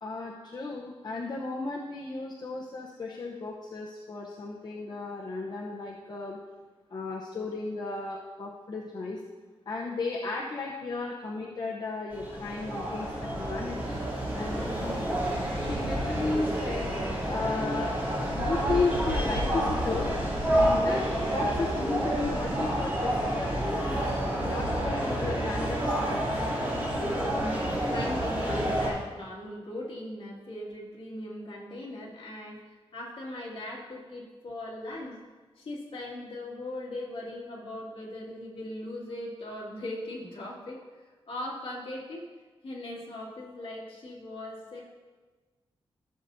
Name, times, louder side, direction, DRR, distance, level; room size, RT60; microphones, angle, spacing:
voice 1, 0.0-6.4 6.9-9.2 9.7-14.0 14.3-15.1 15.6-16.9 17.3-17.9 18.3-20.1 20.5-24.0 24.4-26.3, left 3 dB, 45° left, -3 dB, 0.8 m, -34 dB
sound 1, 12.1-28.9, right 1 dB, 15° right, 3.0 m, -29 dB
voice 2, 27.9-35.2 35.6-42.3 42.6-44.8, left 1 dB, 65° left, -4 dB, 2.2 m, -39 dB
15.0 x 6.8 x 2.7 m, 1.3 s
wide cardioid pair, 165°, 10 cm